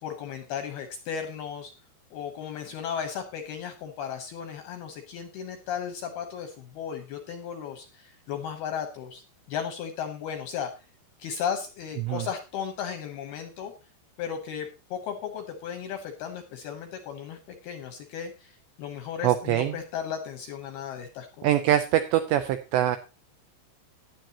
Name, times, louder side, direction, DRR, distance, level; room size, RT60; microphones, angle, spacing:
voice 1, 0.0-1.7 2.1-9.2 9.5-10.7 11.2-13.7 14.2-21.5, left 8 dB, 75° left, 6 dB, 2.4 m, -35 dB
voice 2, 19.2-19.8 21.4-23.0, right 12 dB, 85° right, 9 dB, 2.5 m, -23 dB
15.5 x 10.5 x 2.9 m, 0.30 s
omnidirectional pair, 5.8 m